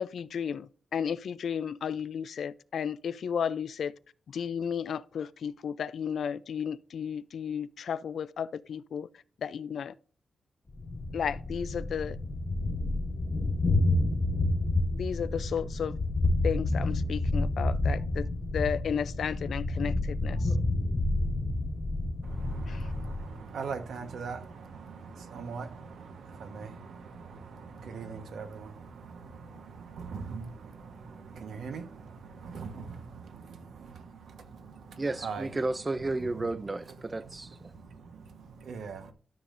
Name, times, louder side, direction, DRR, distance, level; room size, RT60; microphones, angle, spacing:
voice 1, 0.0-3.9 4.3-9.1 9.4-9.9 11.1-12.2 14.9-16.0 16.4-18.3 18.5-20.5 22.7-22.9, left 7 dB, 70° left, 0.4 m, -33 dB
Thunder, 10.7-23.4, left 2 dB, 35° left, 1.5 m, -29 dB
voice 2, 22.2-33.4 34.6-35.5 37.7-39.1, right 5 dB, 80° right, 1.2 m, -41 dB
voice 3, 35.0-37.7, right 2 dB, 20° right, 0.5 m, -32 dB
12.5 x 6.6 x 2.6 m
wide cardioid pair, 155°, 0 cm